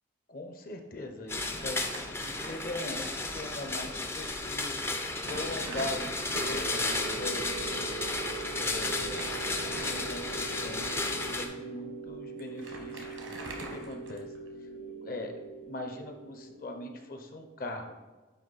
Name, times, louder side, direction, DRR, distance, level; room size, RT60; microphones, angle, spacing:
voice 1, 0.3-4.8 5.3-8.0 8.5-9.3 9.9-14.3 15.0-15.3 15.7-18.0, left 1 dB, 45° left, 4 dB, 0.7 m, -41 dB
sound 1, 1.3-11.5, left 2 dB, 10° left, 0.4 m, -33 dB
Crumpling crinkling, 1.8-3.1 3.4-3.5 4.3-4.4 4.8-6.7 8.8-10.4 11.0-11.2 12.1-12.2 12.4-14.5, right 2 dB, 80° right, 1.2 m, -44 dB
sound 2, 6.3-17.2, right 4 dB, 55° right, 0.6 m, -42 dB
9.2 x 3.1 x 4.0 m, 1.3 s
head